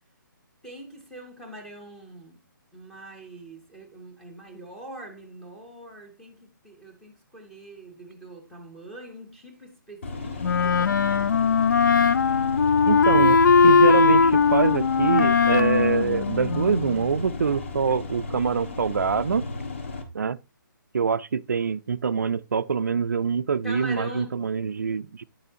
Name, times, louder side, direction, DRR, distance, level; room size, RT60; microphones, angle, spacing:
voice 1, 0.6-2.4 2.7-11.4 23.6-24.4, right 1 dB, ahead, 0.7 m, -42 dB
sound 1, 10.0-20.0, left 2 dB, 35° left, 1.4 m, -34 dB
Wind instrument woodwind instrument, 10.4-17.0, left 5 dB, 60° left, 0.4 m, -20 dB
voice 2, 12.9-19.5 20.1-20.4 20.9-25.2, right 6 dB, 55° right, 0.4 m, -25 dB
9.8 x 6.8 x 2.7 m
hypercardioid pair, 175°, 11 cm